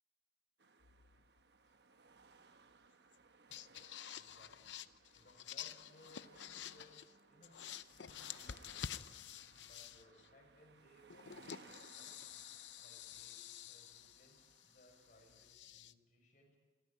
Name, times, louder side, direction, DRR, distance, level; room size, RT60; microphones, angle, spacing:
sound 1, 0.6-15.5, right 4 dB, 70° right, 1.0 m, -65 dB
sound 2, 0.8-1.4 3.1-3.2 3.5-7.1 7.4-10.3 11.1-15.9, left 9 dB, 90° left, 0.7 m, -50 dB
voice 1, 4.1-4.8 5.0-7.0 7.3-9.1 9.6-12.2 12.8-16.6, left 1 dB, 45° left, 1 dB, 7.0 m, -66 dB
28.5 x 14.5 x 8.6 m, 1.3 s
head